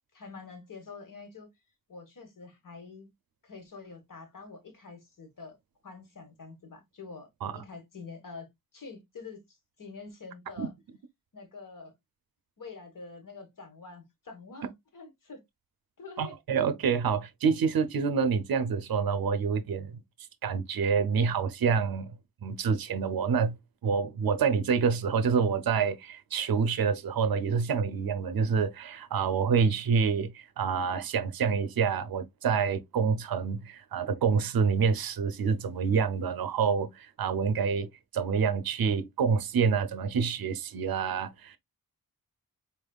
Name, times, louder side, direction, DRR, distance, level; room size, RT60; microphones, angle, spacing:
voice 1, 0.1-1.5 1.9-3.1 3.4-5.6 5.8-10.7 11.3-11.9 12.6-15.4 16.0-16.4, left 4 dB, 60° left, 1.5 m, -46 dB
voice 2, 16.2-20.0 20.4-22.1 22.4-23.6 23.8-41.6, right 6 dB, 80° right, 0.6 m, -27 dB
4.1 x 3.5 x 2.3 m
wide cardioid pair, 80°, 36 cm